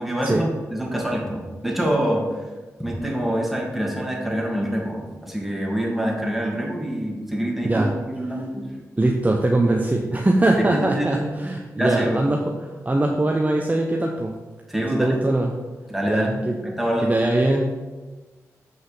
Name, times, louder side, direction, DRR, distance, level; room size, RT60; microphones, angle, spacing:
voice 1, 0.0-2.4 2.8-7.9 8.2-8.7 10.7-11.3 11.8-12.2 14.7-15.2 15.9-16.3 16.6-17.2, right 1 dB, ahead, -2 dB, 2.7 m, -25 dB
voice 2, 9.0-12.5 12.8-14.3 14.9-15.5 16.1-16.6 17.0-17.8, right 2 dB, 25° right, 1 dB, 1.0 m, -21 dB
8.1 x 5.4 x 5.1 m, 1.3 s
supercardioid pair, 45°, 6 cm